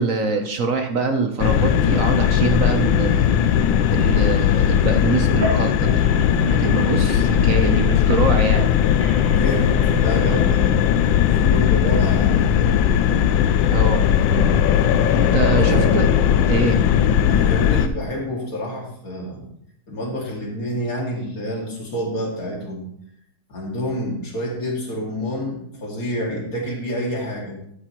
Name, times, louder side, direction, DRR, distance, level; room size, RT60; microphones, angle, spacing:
voice 1, 0.0-3.3 3.9-6.0 6.5-8.7 13.7-14.1 15.1-16.1 16.5-16.8, right 4 dB, 55° right, 6 dB, 1.0 m, -24 dB
sound 1, 1.4-17.9, left 9 dB, 85° left, 1.3 m, -18 dB
sound 2, 5.2-10.7, right 1 dB, 75° right, 2.8 m, -33 dB
voice 2, 9.2-10.8 11.2-12.9 15.5-16.1 17.3-19.5 19.9-22.9 23.5-27.6, equal, 50° left, -2 dB, 2.7 m, -28 dB
12.5 x 8.6 x 3.0 m, 0.72 s
omnidirectional pair, 2.1 m